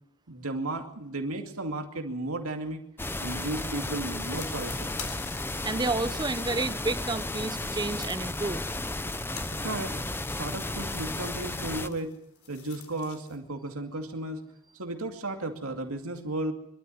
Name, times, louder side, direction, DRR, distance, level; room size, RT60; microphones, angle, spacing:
voice 1, 0.3-2.8 3.2-4.9 9.6-9.9 10.4-12.1 12.5-14.4 14.8-16.5, right 2 dB, 90° right, 2.5 m, -34 dB
sound 1, 3.0-11.9, left 2 dB, 10° left, 0.8 m, -34 dB
sound 2, 4.0-6.8 7.4-13.4, left 8 dB, 85° left, 3.9 m, -48 dB
voice 2, 5.6-8.6, right 3 dB, 20° right, 0.8 m, -30 dB
24.0 x 13.0 x 9.8 m
head